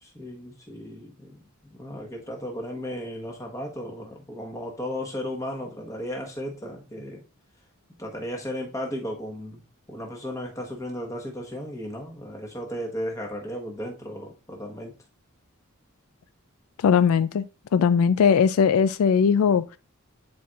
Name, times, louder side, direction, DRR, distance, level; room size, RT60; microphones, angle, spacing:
voice 1, 0.0-1.3 1.7-7.2 8.0-9.6 9.9-14.9, equal, 15° left, 1.2 m, -35 dB
voice 2, 16.8-17.4 17.7-19.8, left 6 dB, 80° left, 0.3 m, -19 dB
10.5 x 4.4 x 2.4 m
head